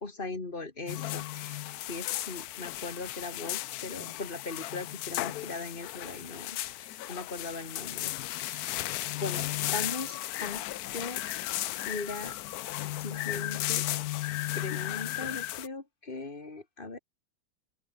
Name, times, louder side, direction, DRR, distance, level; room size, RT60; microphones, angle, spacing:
voice 1, 0.0-1.6 1.9-8.1 8.5-8.8 9.1-10.6 10.9-11.2 11.9-12.3 13.0-13.9 14.5-17.0, left 3 dB, 25° left, 2.7 m, -39 dB
sound 1, 0.9-15.7, left 15 dB, 75° left, 0.9 m, -35 dB
open air
omnidirectional pair, 2.1 m